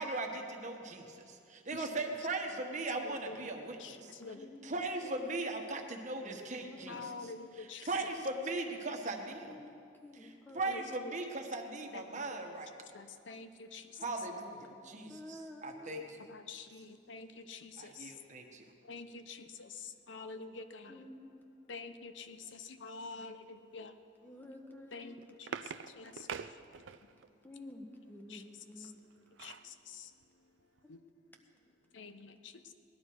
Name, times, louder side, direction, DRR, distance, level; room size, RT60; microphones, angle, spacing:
voice 1, 0.0-4.1 4.6-7.0 7.9-9.6 10.2-12.7 14.0-16.0 17.8-18.6, right 2 dB, 40° right, 3 dB, 1.3 m, -39 dB
voice 2, 1.7-2.2 2.5-2.6 3.0-3.5 3.8-4.5 6.9-8.1 10.6-11.1 11.9-12.2 12.9-13.9 15.9-18.1 18.9-21.0 21.7-23.9 24.9-25.5 26.0-26.3 28.3-28.4 28.8-28.9 29.4-30.1 30.9-31.0 31.9-32.5, left 4 dB, 85° left, 9 dB, 0.8 m, -47 dB
voice 3, 4.3-5.2 5.7-5.9 6.2-7.1 9.5-11.1 14.7-15.9 20.9-21.6 24.2-25.1 27.4-29.0 30.8-31.8, left 1 dB, 10° left, 3 dB, 1.2 m, -52 dB
sound 1, 24.8-27.3 28.8-29.7 30.2-30.3 30.6-30.8, right 6 dB, 85° right, 0.5 m, -45 dB
19.0 x 11.5 x 4.7 m, 2.4 s
head